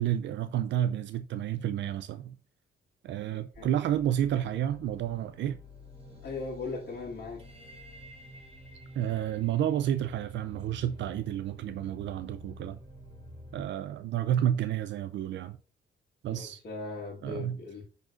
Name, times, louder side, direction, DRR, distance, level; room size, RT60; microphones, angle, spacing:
voice 1, 0.0-2.4 3.0-5.6 9.0-12.8 13.5-15.6 16.2-16.6 17.2-17.6, right 11 dB, 65° right, 0.4 m, -30 dB
voice 2, 3.3-3.7 6.2-7.4 16.3-17.8, left 3 dB, 55° left, 1.8 m, -39 dB
sound 1, 3.5-13.6, left 1 dB, 30° right, 3.2 m, -49 dB
10.0 x 3.8 x 2.5 m
cardioid pair, 90°, 20 cm